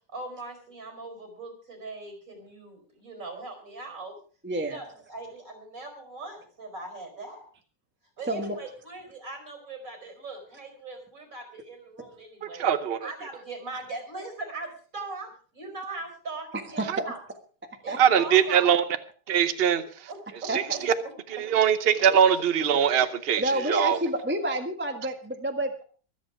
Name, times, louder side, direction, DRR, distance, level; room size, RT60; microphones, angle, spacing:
voice 1, 0.1-4.1 4.7-7.4 8.2-12.7 13.0-14.7 14.9-15.3 15.5-16.8 17.1-17.2 17.8-18.7 20.1-20.2 20.4-20.5 23.9-24.0, right 3 dB, 40° right, 5 dB, 5.2 m, -40 dB
voice 2, 4.4-4.8 8.3-8.6 16.5-17.1 17.9-18.2 20.5-20.8 23.4-25.8, right 1 dB, 5° right, 4 dB, 1.2 m, -29 dB
voice 3, 12.4-13.3 16.9-17.0 18.0-18.8 19.3-20.9 21.3-24.0, right 8 dB, 65° right, 10 dB, 0.5 m, -23 dB
24.0 x 8.2 x 4.8 m, 0.41 s
omnidirectional pair, 2.3 m